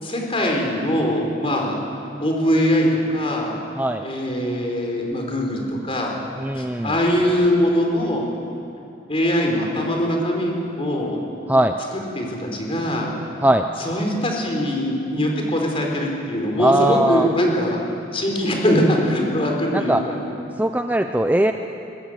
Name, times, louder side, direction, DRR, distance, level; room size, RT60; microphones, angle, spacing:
voice 1, 0.0-1.8 2.2-3.6 4.0-6.1 6.6-8.2 9.1-11.2 11.9-13.1 13.8-17.8 18.1-20.2, equal, 30° left, 0 dB, 4.7 m, -22 dB
voice 2, 6.4-6.9 11.5-11.7 13.4-13.6 16.6-17.3 19.7-20.0 20.6-21.5, right 1 dB, 10° right, 6 dB, 0.6 m, -19 dB
23.0 x 19.5 x 9.2 m, 2.7 s
head